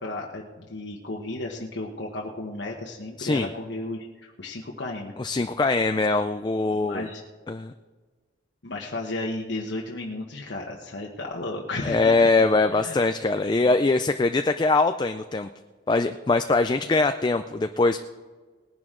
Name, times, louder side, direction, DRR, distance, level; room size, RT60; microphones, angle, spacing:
voice 1, 0.0-5.1 6.7-7.2 8.6-13.0, left 2 dB, 80° left, -1 dB, 1.2 m, -34 dB
voice 2, 5.2-7.1 7.5-7.7 11.8-15.5 15.9-18.0, left 3 dB, 25° left, 9 dB, 0.4 m, -22 dB
19.5 x 10.5 x 3.8 m, 1.4 s
head